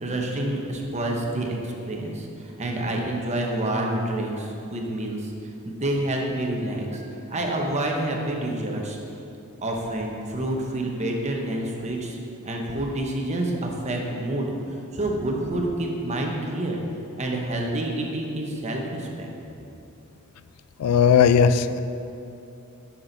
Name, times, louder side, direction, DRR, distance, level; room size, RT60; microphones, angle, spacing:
voice 1, 0.0-5.3 5.6-7.0 7.3-9.0 9.6-12.2 12.4-14.5 14.9-16.8 17.2-19.3, right 1 dB, 30° right, 0 dB, 1.0 m, -28 dB
voice 2, 20.8-21.8, left 7 dB, 85° left, 12 dB, 0.3 m, -17 dB
9.4 x 6.0 x 4.0 m, 2.8 s
head